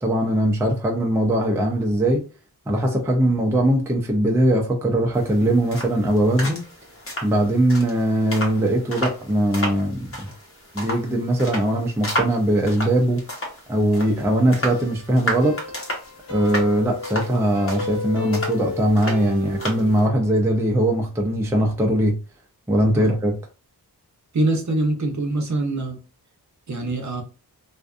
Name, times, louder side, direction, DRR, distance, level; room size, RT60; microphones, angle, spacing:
voice 1, 0.0-2.2 2.7-6.6 7.2-10.3 10.7-13.2 13.7-15.6 16.3-22.1 22.7-23.4, right 1 dB, 5° right, 0.4 m, -20 dB
sound 1, 5.1-20.1, equal, 35° left, 0.9 m, -33 dB
sound 2, 13.9-20.1, left 3 dB, 55° left, 1.2 m, -33 dB
voice 2, 24.3-26.0 26.7-27.2, right 2 dB, 45° right, 0.7 m, -24 dB
2.5 x 2.3 x 2.4 m
wide cardioid pair, 105°, 40 cm